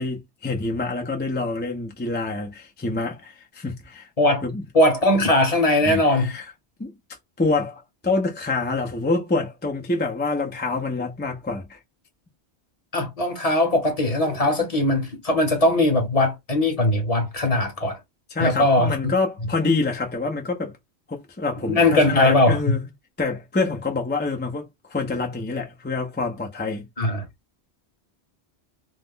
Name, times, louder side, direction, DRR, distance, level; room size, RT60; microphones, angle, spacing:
voice 1, 0.0-4.1 4.4-4.6 5.9-6.4 6.8-6.9 7.4-11.8 18.3-20.7 21.1-22.9 23.2-26.9, left 3 dB, 15° left, 0.3 m, -26 dB
voice 2, 4.7-6.3 12.9-18.0 18.4-19.1 21.7-22.8 27.0-27.2, left 1 dB, 35° left, 0.9 m, -20 dB
2.4 x 2.0 x 3.6 m
omnidirectional pair, 1.1 m